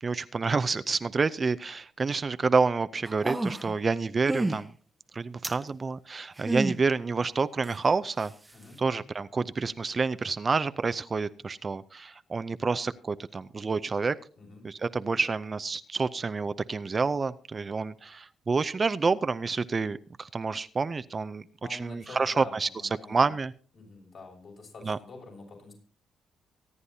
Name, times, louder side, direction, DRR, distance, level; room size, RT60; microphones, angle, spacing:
voice 1, 0.0-4.7 5.1-8.3 8.8-14.2 14.6-21.4 21.7-22.7 23.1-23.5 24.8-25.0, right 4 dB, 35° right, 13 dB, 0.5 m, -28 dB
sound 1, 3.1-3.8 4.3-4.6 5.4-5.6 6.4-6.8 7.6-7.7, right 2 dB, 15° right, 0.8 m, -29 dB
voice 2, 8.5-9.0 14.4-14.6 21.6-23.3 23.7-25.7, left 3 dB, 55° left, -1 dB, 6.6 m, -47 dB
24.5 x 9.8 x 2.8 m, 0.41 s
cardioid pair, 90°, 0 cm